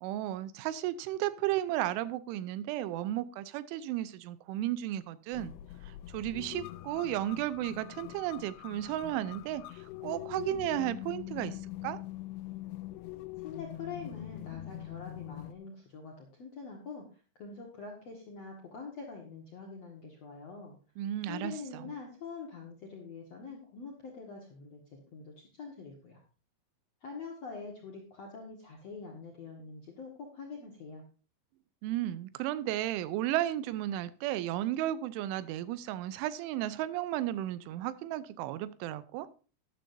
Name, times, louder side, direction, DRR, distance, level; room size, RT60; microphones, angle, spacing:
voice 1, 0.0-5.5 5.8-11.6 11.8-12.0 21.0-21.9 31.8-39.3, right 13 dB, 85° right, 3.1 m, -34 dB
sound 1, 5.3-15.5, left 16 dB, 90° left, 2.3 m, -43 dB
voice 2, 13.4-17.0 17.4-20.8 21.3-26.2 27.0-31.0, left 4 dB, 65° left, 1.6 m, -45 dB
12.5 x 11.0 x 2.7 m
omnidirectional pair, 5.4 m